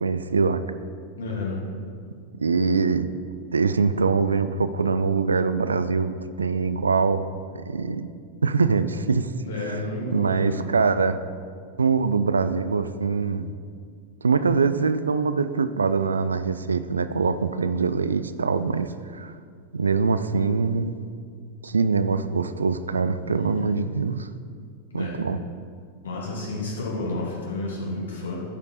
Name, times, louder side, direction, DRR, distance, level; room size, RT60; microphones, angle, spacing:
voice 1, 0.0-0.6 2.4-3.1 3.5-7.3 7.7-8.1 8.4-9.3 9.7-9.8 10.1-11.2 11.8-13.5 14.2-19.3 19.7-20.9 21.6-24.3 24.9-25.4, right 4 dB, 75° right, 12 dB, 0.4 m, -23 dB
voice 2, 1.2-1.6 9.4-10.6 23.3-23.7 24.9-25.2 26.0-28.4, left 2 dB, 65° left, -3 dB, 2.2 m, -31 dB
14.0 x 5.2 x 4.1 m, 2.1 s
figure-of-eight pair, 90°, 0 cm